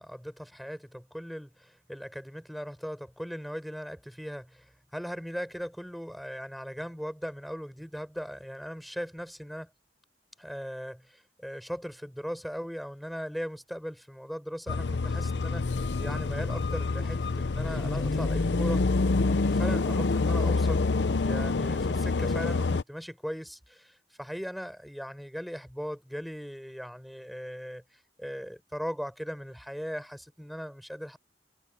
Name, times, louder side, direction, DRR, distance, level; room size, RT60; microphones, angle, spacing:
voice 1, 0.0-9.7 10.4-18.8 19.2-31.2, equal, ahead, 7.3 m, -39 dB
sound 1, 14.7-22.8, left 3 dB, 85° left, 0.7 m, -27 dB
head